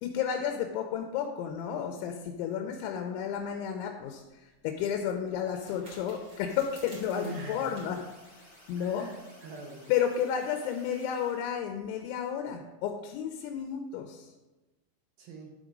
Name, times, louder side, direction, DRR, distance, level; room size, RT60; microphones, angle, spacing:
voice 1, 0.0-8.0 8.7-9.1 9.9-14.3, left 8 dB, 80° left, 4 dB, 3.0 m, -32 dB
sound 1, 4.0-9.2, right 1 dB, 30° right, 3.4 m, -55 dB
sound 2, 6.4-11.5, equal, 10° right, 2.7 m, -56 dB
voice 2, 7.1-7.9 8.8-9.8 15.2-15.5, right 2 dB, 80° right, 1 dB, 2.2 m, -42 dB
11.5 x 4.9 x 5.2 m, 1.1 s
omnidirectional pair, 5.5 m